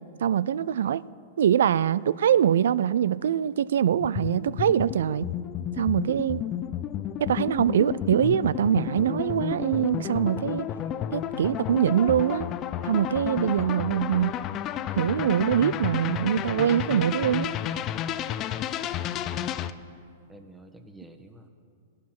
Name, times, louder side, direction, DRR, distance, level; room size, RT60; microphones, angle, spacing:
voice 1, 0.2-1.0 1.4-5.3 5.8-6.5 7.2-10.7 11.1-12.5 12.8-14.4 15.0-17.5, right 9 dB, 75° right, 0.3 m, -23 dB
sound 1, 4.0-19.7, left 10 dB, 35° left, 0.5 m, -32 dB
voice 2, 20.3-21.5, right 1 dB, 10° right, 1.3 m, -50 dB
16.0 x 11.5 x 5.9 m
hypercardioid pair, 115°, 0 cm